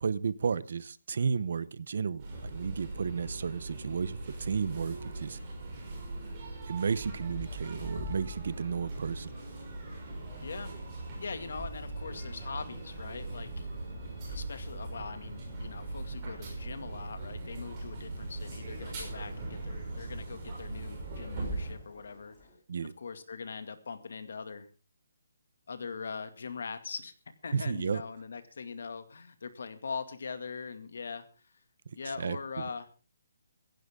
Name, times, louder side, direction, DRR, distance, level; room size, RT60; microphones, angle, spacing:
voice 1, 0.0-5.4 6.7-9.3 22.7-22.9 27.5-28.0 32.2-32.7, right 6 dB, 50° right, 18 dB, 0.8 m, -33 dB
sound 1, 2.2-21.7, right 2 dB, 20° right, 5.9 m, -40 dB
sound 2, 6.9-22.5, left 4 dB, 10° left, 5.2 m, -50 dB
voice 2, 10.4-13.7 14.3-22.4 22.8-24.7 25.7-27.1 27.4-31.5 31.9-32.9, left 5 dB, 60° left, 9 dB, 2.2 m, -42 dB
16.0 x 15.5 x 3.7 m, 0.35 s
hypercardioid pair, 175°, 0 cm